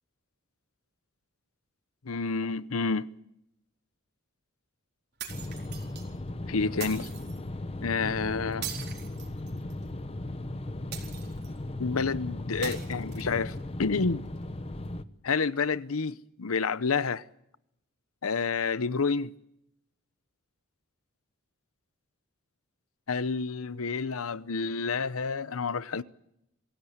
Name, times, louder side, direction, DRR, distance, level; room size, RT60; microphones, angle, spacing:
voice 1, 2.0-3.1 6.5-7.1 7.8-8.7 11.8-13.5 13.8-14.2 15.2-17.2 18.2-19.3 23.1-26.0, left 4 dB, 80° left, 0.8 m, -29 dB
sound 1, 5.2-6.1 6.8-7.4 8.6-9.8 10.9-11.6 12.6-13.6, right 9 dB, 50° right, 4.1 m, -41 dB
sound 2, 5.3-15.0, left 1 dB, 25° left, 0.8 m, -37 dB
25.0 x 16.5 x 8.0 m
head